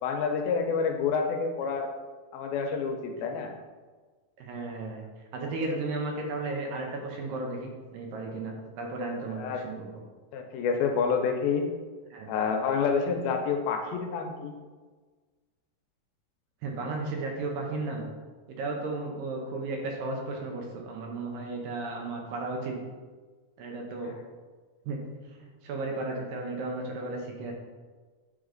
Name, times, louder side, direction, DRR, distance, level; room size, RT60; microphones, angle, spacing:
voice 1, 0.0-1.9 2.3-3.5 9.4-9.7 10.3-11.7 12.3-14.6, left 5 dB, 80° left, 4 dB, 2.4 m, -28 dB
voice 2, 4.4-10.0 12.1-12.3 16.6-18.0 18.5-22.8 23.6-24.1 24.9-25.0 25.4-27.5, right 3 dB, 75° right, 1 dB, 2.4 m, -34 dB
8.1 x 4.0 x 3.8 m, 1.4 s
omnidirectional pair, 4.3 m